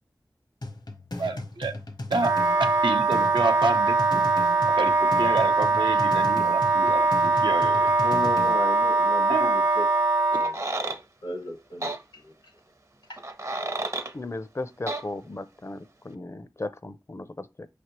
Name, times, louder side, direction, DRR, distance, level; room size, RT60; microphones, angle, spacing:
sound 1, 0.6-8.6, left 2 dB, 65° left, 0.8 m, -37 dB
voice 1, 1.2-1.7 2.1-4.2 4.8-7.9 9.3-9.5, right 3 dB, 85° right, 0.7 m, -29 dB
Wind instrument woodwind instrument, 2.2-10.5, right 3 dB, 60° right, 1.0 m, -22 dB
voice 2, 8.0-9.8 10.3-12.6 13.1-13.2, left 2 dB, 85° left, 1.2 m, -36 dB
sound 2, 10.3-11.0 11.8-12.0 13.2-14.1 14.9-15.0, right 2 dB, 40° right, 0.6 m, -31 dB
voice 3, 14.1-17.7, left 2 dB, 35° left, 0.5 m, -36 dB
5.3 x 3.3 x 2.9 m
wide cardioid pair, 50°, 8 cm